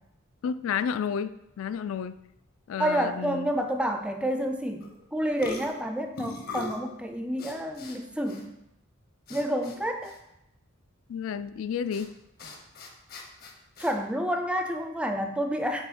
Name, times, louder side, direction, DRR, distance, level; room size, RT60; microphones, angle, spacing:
voice 1, 0.4-2.2 2.7-3.5 11.1-12.1, left 7 dB, 70° left, 14 dB, 0.3 m, -31 dB
voice 2, 2.8-8.5 9.3-10.1 13.8-15.9, equal, 5° right, 5 dB, 0.4 m, -29 dB
sound 1, 4.8-5.0 5.4-6.8 7.4-8.0 8.3-8.4 9.3-9.8 10.0-10.2 11.9-12.0 12.4-13.9, left 2 dB, 45° left, 0.8 m, -40 dB
7.3 x 3.0 x 5.0 m, 0.85 s
head